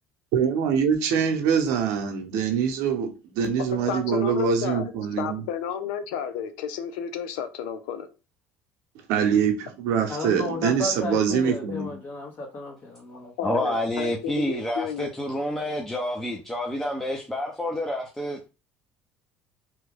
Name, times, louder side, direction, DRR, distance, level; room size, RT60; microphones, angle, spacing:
voice 1, 0.3-5.4 9.1-11.9, right 7 dB, 75° right, 0.8 m, -24 dB
voice 2, 3.7-8.1 11.1-11.5 13.4-15.1, left 8 dB, 85° left, 0.5 m, -32 dB
voice 3, 10.1-13.3, left 2 dB, 35° left, 1.0 m, -33 dB
voice 4, 13.4-18.5, left 1 dB, 5° left, 0.6 m, -28 dB
3.1 x 2.3 x 3.4 m
supercardioid pair, 90°, 5 cm